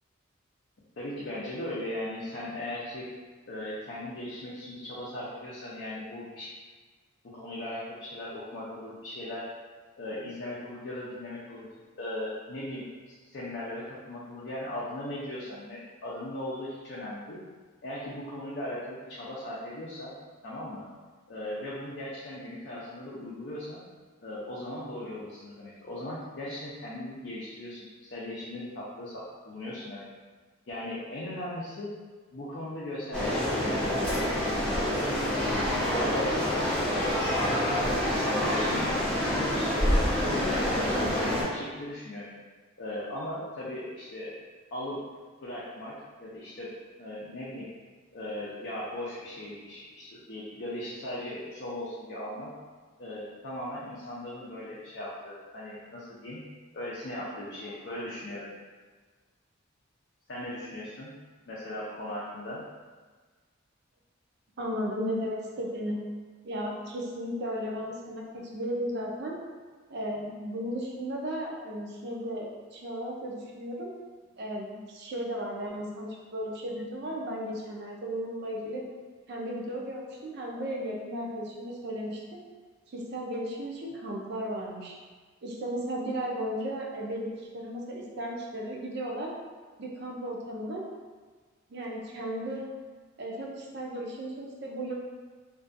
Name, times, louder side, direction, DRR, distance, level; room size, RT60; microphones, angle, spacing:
voice 1, 1.0-3.0 3.5-6.5 7.3-9.5 10.0-11.7 12.0-17.4 17.8-20.1 20.4-20.9 21.3-23.8 24.2-30.0 30.7-32.0 32.3-34.3 34.8-36.9 37.3-39.0 39.5-39.7 40.2-42.3 42.8-44.3 44.7-45.0 45.4-46.7 47.0-47.7 48.1-52.5 53.0-56.4 56.7-58.5 60.3-61.1 61.5-62.6, left 1 dB, 55° left, -7 dB, 0.4 m, -38 dB
sound 1, 33.1-41.4, left 1 dB, 5° left, 0.6 m, -27 dB
voice 2, 64.6-66.0 66.4-69.4 69.9-73.9 74.4-78.8 79.3-82.4 82.9-85.0 85.4-89.3 89.8-90.8 91.7-92.7 93.2-94.9, equal, 55° right, -1 dB, 0.5 m, -35 dB
2.6 x 2.3 x 2.5 m, 1.4 s
head